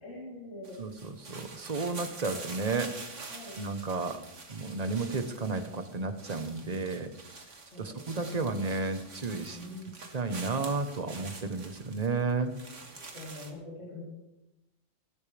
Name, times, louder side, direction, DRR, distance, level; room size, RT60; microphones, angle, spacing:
voice 1, 0.0-0.8 3.3-3.6 7.7-8.5 9.5-10.0 13.1-14.0, left 1 dB, 90° left, -7 dB, 4.2 m, -44 dB
sound 1, 0.6-13.5, right 3 dB, 80° right, 2.1 m, -46 dB
voice 2, 0.8-3.0 3.6-4.2 4.5-7.1 7.8-9.6 10.1-12.5, right 3 dB, 35° right, 8 dB, 1.1 m, -32 dB
23.5 x 12.5 x 3.4 m, 0.94 s
omnidirectional pair, 1.2 m